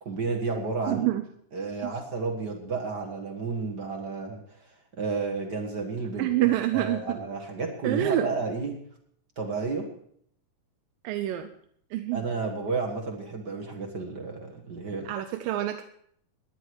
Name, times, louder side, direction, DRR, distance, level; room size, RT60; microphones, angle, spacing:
voice 1, 0.0-1.1 1.5-8.8 9.4-9.9 12.1-15.1, right 4 dB, 40° right, 1 dB, 1.6 m, -32 dB
voice 2, 0.9-1.2 1.8-1.9 6.2-7.2 7.8-8.3 11.0-11.5 11.9-12.3 15.1-15.8, right 14 dB, 80° right, 7 dB, 2.4 m, -27 dB
18.5 x 10.5 x 4.8 m, 0.66 s
omnidirectional pair, 3.9 m